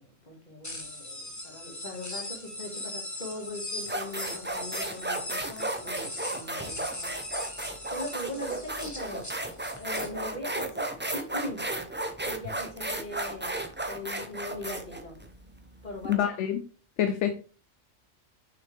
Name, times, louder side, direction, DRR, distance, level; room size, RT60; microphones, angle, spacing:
voice 1, 0.0-7.5 7.9-9.3 9.8-11.7 12.2-15.3 15.8-16.2, left 1 dB, 35° left, 2.1 m, -40 dB
sound 1, 0.6-10.1, left 1 dB, 15° left, 1.1 m, -40 dB
sound 2, 3.2-3.4 3.8-16.1, right 2 dB, 10° right, 0.5 m, -34 dB
voice 2, 16.1-16.6 17.0-17.4, left 10 dB, 65° left, 0.9 m, -26 dB
6.6 x 5.8 x 3.4 m
omnidirectional pair, 1.4 m